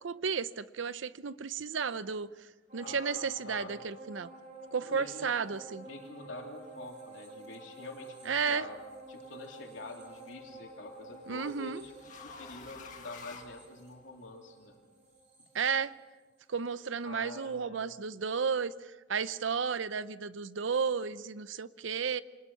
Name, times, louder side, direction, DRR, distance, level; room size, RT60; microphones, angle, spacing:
voice 1, 0.0-2.5 2.7-4.3 4.7-5.9 8.3-8.6 11.3-11.8 15.5-15.9 16.5-22.2, right 6 dB, 80° right, 15 dB, 0.6 m, -33 dB
sound 1, 2.7-16.4 16.8-16.9, right 2 dB, 35° right, 3.4 m, -50 dB
voice 2, 2.8-3.7 4.8-5.3 5.8-8.8 9.1-11.9 12.2-14.8 15.4-15.5 17.0-17.9, left 2 dB, 75° left, 1 dB, 3.3 m, -46 dB
sound 2, 8.7-8.9 10.3-14.3, left 5 dB, 40° left, 1.8 m, -51 dB
26.5 x 20.0 x 5.7 m, 1.2 s
head